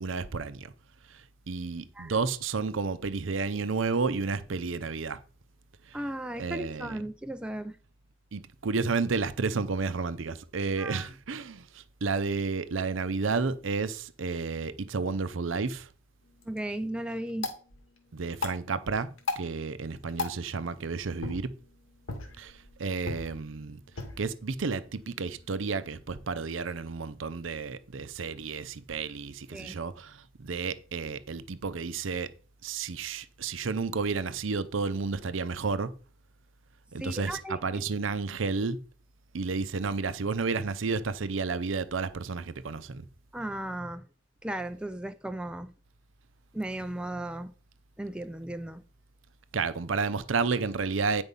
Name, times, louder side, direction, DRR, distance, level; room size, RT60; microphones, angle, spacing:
voice 1, 0.0-0.7 1.1-5.2 5.8-6.0 6.4-7.0 8.3-15.9 18.1-21.5 22.4-23.8 24.2-32.3 32.6-35.9 36.9-38.8 39.3-43.0 49.5-51.2, right 4 dB, 70° right, 0.6 m, -31 dB
voice 2, 5.9-7.8 10.8-11.1 16.5-17.5 29.5-29.8 37.0-37.6 43.3-44.0 44.4-45.7 46.5-47.5 48.0-48.8, right 1 dB, 5° right, 0.4 m, -36 dB
sound 1, 16.2-26.3, left 3 dB, 90° left, 2.1 m, -41 dB
9.8 x 5.2 x 5.3 m
head